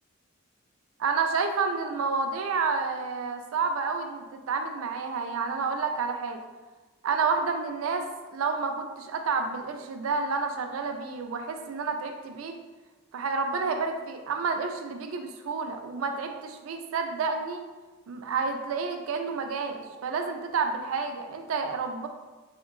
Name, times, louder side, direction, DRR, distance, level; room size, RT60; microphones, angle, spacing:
voice 1, 1.0-6.4 7.0-12.6 13.1-17.7 18.1-22.1, right 4 dB, 80° right, 5 dB, 0.4 m, -30 dB
3.5 x 2.8 x 2.5 m, 1.2 s
head